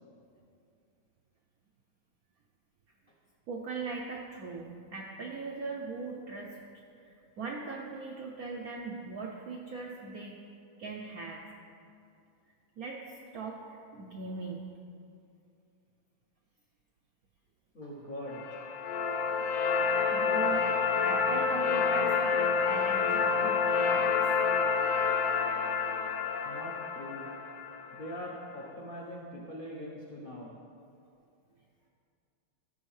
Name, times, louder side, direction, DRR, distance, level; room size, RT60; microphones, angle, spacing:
voice 1, 3.5-6.6 7.0-10.4 10.8-11.4 12.8-13.0 13.3-14.6 20.1-20.7 21.0-24.1, right 4 dB, 75° right, 0 dB, 0.8 m, -40 dB
voice 2, 17.7-18.4 26.4-27.3 27.9-30.6, equal, 60° left, -3 dB, 0.5 m, -42 dB
sound 1, 18.3-28.4, left 5 dB, 85° left, 1.4 m, -28 dB
13.0 x 6.1 x 3.2 m, 2.5 s
omnidirectional pair, 2.1 m